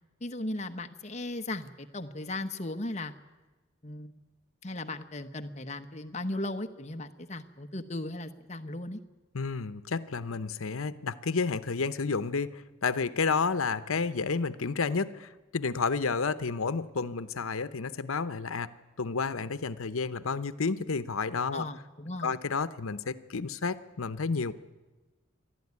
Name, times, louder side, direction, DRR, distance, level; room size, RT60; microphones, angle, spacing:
voice 1, 0.2-3.1 3.8-4.2 4.6-9.0 21.5-22.3, left 2 dB, 30° left, 7 dB, 1.0 m, -37 dB
voice 2, 9.3-18.7 19.0-21.6 22.2-24.5, left 4 dB, 80° left, 14 dB, 0.9 m, -31 dB
28.0 x 12.0 x 9.6 m, 1.2 s
head